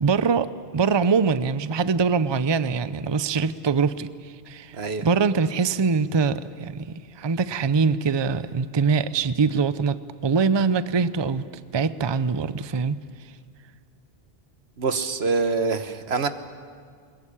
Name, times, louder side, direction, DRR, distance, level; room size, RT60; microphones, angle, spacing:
voice 1, 0.0-10.0 10.2-13.0, right 5 dB, 30° right, 14 dB, 0.6 m, -23 dB
voice 2, 4.7-5.1 14.8-16.3, right 4 dB, 80° right, 10 dB, 1.4 m, -25 dB
22.0 x 21.5 x 10.0 m, 2.1 s
omnidirectional pair, 1.1 m